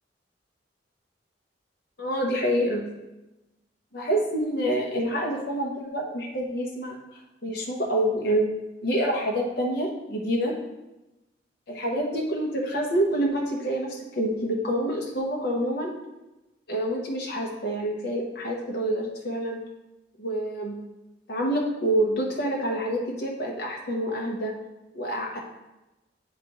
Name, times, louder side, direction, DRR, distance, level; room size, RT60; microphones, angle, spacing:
voice 1, 2.0-2.8 3.9-8.5 8.8-10.5 11.7-15.9 16.7-19.6 20.2-20.8 21.3-24.5 24.9-25.4, right 1 dB, 60° left, -1 dB, 0.8 m, -27 dB
9.1 x 3.6 x 2.9 m, 1.0 s
head